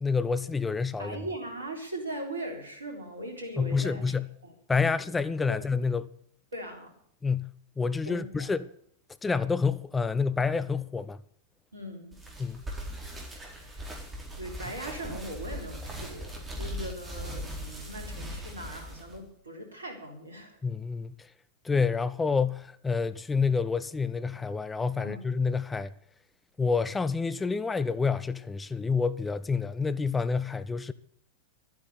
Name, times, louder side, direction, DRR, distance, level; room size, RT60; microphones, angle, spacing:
voice 1, 0.0-1.2 3.6-4.3 4.7-6.1 7.2-7.5 7.8-8.7 9.2-11.2 12.4-12.6 20.6-21.3 21.6-25.9 26.6-30.9, left 5 dB, 15° left, 0.6 m, -28 dB
voice 2, 1.0-4.0 4.4-4.5 4.8-4.9 5.5-5.6 6.5-6.9 8.1-8.5 11.7-12.1 13.7-13.9 14.4-20.6 25.0-25.2, right 1 dB, 75° right, 3.7 m, -39 dB
sound 1, 12.1-19.2, equal, 15° right, 4.1 m, -39 dB
12.5 x 9.4 x 8.4 m
figure-of-eight pair, 90°, 0 cm